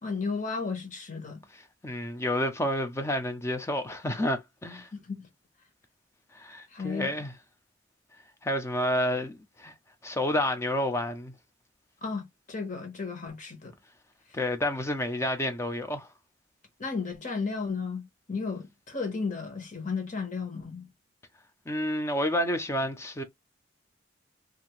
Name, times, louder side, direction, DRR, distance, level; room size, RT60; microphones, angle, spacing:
voice 1, 0.0-1.4 4.9-5.3 6.7-7.1 12.0-13.7 16.8-20.9, left 4 dB, 40° left, 1.0 m, -34 dB
voice 2, 1.8-4.9 6.3-7.3 8.4-9.7 10.0-11.3 14.3-16.1 21.7-23.2, left 1 dB, 15° left, 0.5 m, -29 dB
2.7 x 2.5 x 3.0 m
head